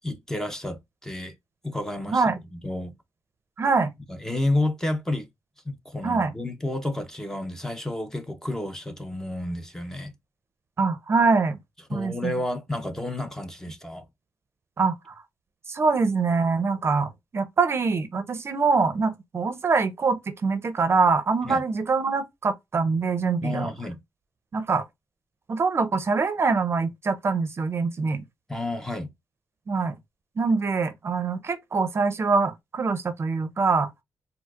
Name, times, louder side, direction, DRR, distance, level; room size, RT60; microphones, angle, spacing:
voice 1, 0.0-1.3 1.6-2.2 2.5-2.9 4.1-5.3 5.7-10.1 11.9-14.1 21.4-21.6 23.4-24.0 28.5-29.1, left 1 dB, 5° left, 0.6 m, -30 dB
voice 2, 2.1-2.4 3.6-3.9 6.0-6.3 10.8-11.6 11.9-12.3 14.8-14.9 15.7-23.7 24.5-24.8 25.5-28.2 29.7-29.9 30.4-33.9, right 4 dB, 40° right, 0.6 m, -24 dB
4.3 x 2.0 x 2.3 m
cardioid pair, 90°, 6 cm